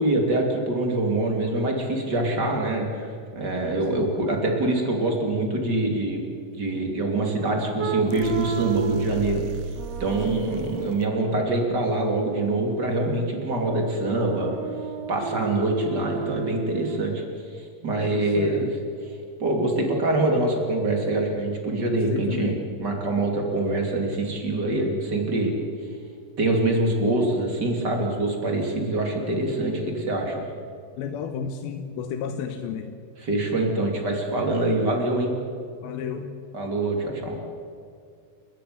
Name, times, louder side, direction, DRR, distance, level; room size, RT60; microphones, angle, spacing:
voice 1, 0.0-6.2 6.5-9.4 10.0-14.6 15.1-17.2 17.5-18.7 19.4-22.5 22.8-25.5 26.4-30.3 33.2-35.3 36.5-37.4, right 2 dB, 25° right, 2 dB, 3.0 m, -25 dB
sound 1, 7.8-9.2 9.8-11.5 13.6-17.0, right 5 dB, 65° right, 1.7 m, -33 dB
sound 2, 8.1-11.0, right 5 dB, 90° right, 1.7 m, -34 dB
voice 2, 18.0-18.7 21.9-22.6 31.0-32.9 35.8-36.3, left 7 dB, 75° left, 6 dB, 2.6 m, -32 dB
29.5 x 12.0 x 9.7 m, 2.3 s
omnidirectional pair, 4.9 m